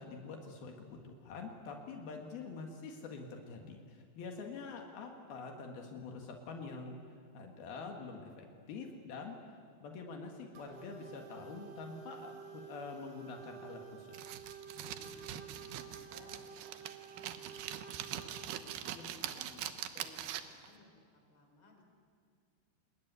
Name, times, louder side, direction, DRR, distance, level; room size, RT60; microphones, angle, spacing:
voice 1, 0.0-7.0 7.3-9.4 9.8-14.3, left 4 dB, 75° left, 2 dB, 3.7 m, -46 dB
sound 1, 10.5-18.9, right 7 dB, 55° right, 4.0 m, -51 dB
sound 2, 14.1-20.7, right 11 dB, 80° right, 3.0 m, -43 dB
voice 2, 14.8-17.5 18.0-18.3 18.9-20.9 21.3-21.8, left 2 dB, 30° left, 2 dB, 4.9 m, -59 dB
28.5 x 21.0 x 9.5 m, 2.1 s
omnidirectional pair, 4.4 m